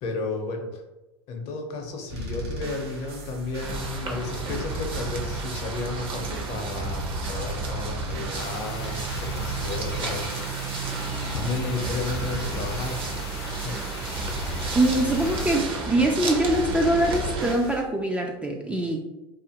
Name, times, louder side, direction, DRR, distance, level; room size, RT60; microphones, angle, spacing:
voice 1, 0.0-0.8 1.3-10.3 11.3-13.8, left 3 dB, 50° left, 3 dB, 0.7 m, -33 dB
sound 1, 2.1-17.8, right 3 dB, 85° right, 0.7 m, -35 dB
sound 2, 3.6-17.5, right 3 dB, 40° right, 0.7 m, -33 dB
sound 3, 8.3-15.6, left 4 dB, 90° left, 0.6 m, -41 dB
voice 2, 14.7-19.0, right 1 dB, 10° right, 1 dB, 0.3 m, -23 dB
2.5 x 2.4 x 2.8 m, 1.1 s
hypercardioid pair, 100°, 13 cm